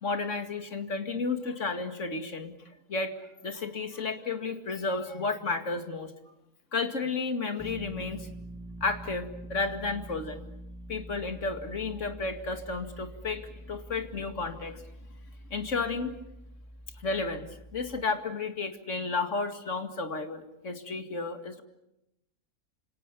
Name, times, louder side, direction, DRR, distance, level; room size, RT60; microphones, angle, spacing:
voice 1, 0.0-2.5 2.9-3.1 3.4-6.1 6.7-8.3 8.8-10.5 10.9-14.8 15.5-16.2 17.0-21.6, left 3 dB, 55° left, 6 dB, 2.5 m, -32 dB
sound 1, 7.6-18.1, right 1 dB, 10° right, 0.8 m, -45 dB
29.5 x 27.0 x 7.0 m, 0.87 s
omnidirectional pair, 1.6 m